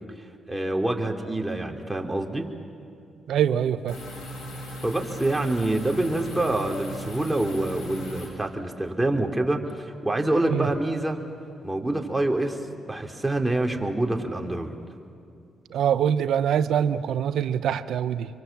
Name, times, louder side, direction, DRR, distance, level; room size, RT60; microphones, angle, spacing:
voice 1, 0.5-2.5 4.8-11.2 11.6-12.6 12.9-14.7, right 2 dB, 10° right, 2 dB, 3.2 m, -26 dB
voice 2, 3.3-4.0 10.5-10.7 15.7-18.3, right 9 dB, 75° right, 13 dB, 0.8 m, -24 dB
sound 1, 3.9-8.3, equal, 85° left, 6.9 m, -38 dB
26.5 x 24.0 x 7.4 m, 2.5 s
supercardioid pair, 55°, 0 cm